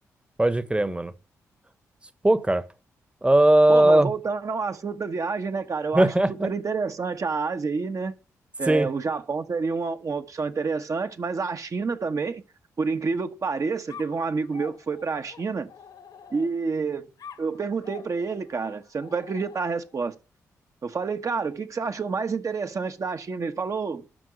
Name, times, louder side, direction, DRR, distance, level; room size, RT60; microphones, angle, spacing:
voice 1, 0.4-1.1 2.2-2.6 3.2-4.1 5.9-6.5 8.7-8.9, right 1 dB, 15° right, 1.1 m, -19 dB
voice 2, 3.7-6.1 6.4-8.2 8.6-12.4 12.8-15.7 16.3-17.1 17.4-20.1 20.8-24.0, right 4 dB, 50° right, 1.2 m, -28 dB
sound 1, 13.9-16.7 17.2-20.1, left 7 dB, 65° left, 1.4 m, -47 dB
12.5 x 4.6 x 7.8 m
hypercardioid pair, 40°, 7 cm